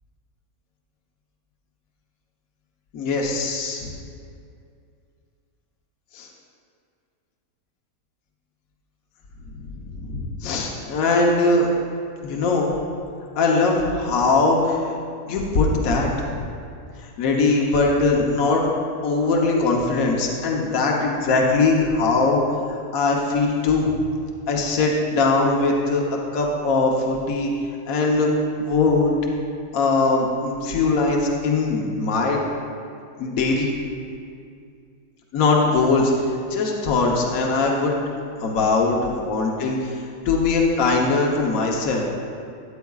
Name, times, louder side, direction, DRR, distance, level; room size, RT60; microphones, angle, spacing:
voice 1, 2.9-3.9 6.1-6.3 9.5-11.7 12.2-12.7 13.3-14.9 15.3-16.4 17.2-18.7 19.0-22.4 22.7-23.9 24.5-26.0 26.3-27.5 27.9-28.3 28.6-29.2 29.7-32.4 33.2-33.7 35.3-36.1 36.5-38.0 38.4-42.0, left 3 dB, 65° left, -1 dB, 1.4 m, -21 dB
13.0 x 9.1 x 2.4 m, 2.4 s
omnidirectional pair, 1.7 m